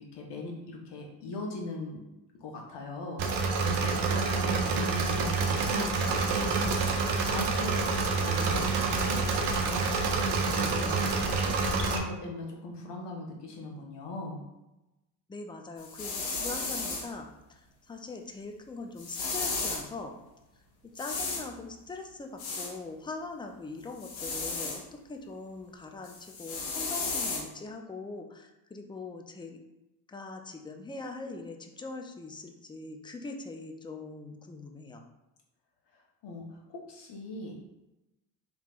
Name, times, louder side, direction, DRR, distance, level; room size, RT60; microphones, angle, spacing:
voice 1, 0.0-2.0 2.3-11.5 11.8-14.4 35.9-37.6, left 2 dB, 55° left, 0 dB, 1.1 m, -40 dB
Engine / Mechanisms, 3.2-12.0, right 4 dB, 55° right, 0.8 m, -27 dB
voice 2, 15.3-20.2 20.8-29.6 30.1-35.0, left 3 dB, 10° left, 3 dB, 0.4 m, -42 dB
sound 1, 15.8-17.1 19.0-19.8 21.0-21.5 22.4-22.7 24.0-24.8 26.0-27.4, left 4 dB, 85° left, 1.0 m, -34 dB
3.4 x 3.1 x 2.4 m, 0.97 s
hypercardioid pair, 55°, 49 cm